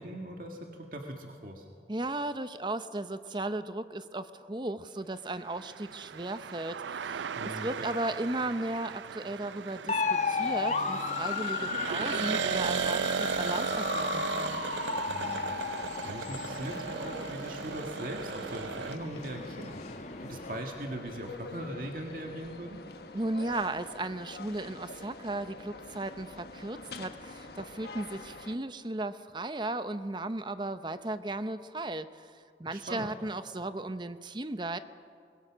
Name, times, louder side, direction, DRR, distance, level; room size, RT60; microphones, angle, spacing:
voice 1, 0.0-1.7 7.3-7.9 15.1-15.4 15.8-22.8 32.7-33.1, right 1 dB, 50° right, 2 dB, 1.9 m, -40 dB
voice 2, 1.9-14.6 23.1-34.8, right 2 dB, 25° right, 11 dB, 0.8 m, -36 dB
sound 1, 5.5-19.0, right 6 dB, 90° right, 0.5 m, -36 dB
sound 2, 9.9-20.6, left 4 dB, 40° left, 1.1 m, -35 dB
sound 3, 12.5-28.5, left 2 dB, 65° left, 1.3 m, -46 dB
24.0 x 22.0 x 6.3 m, 2.3 s
head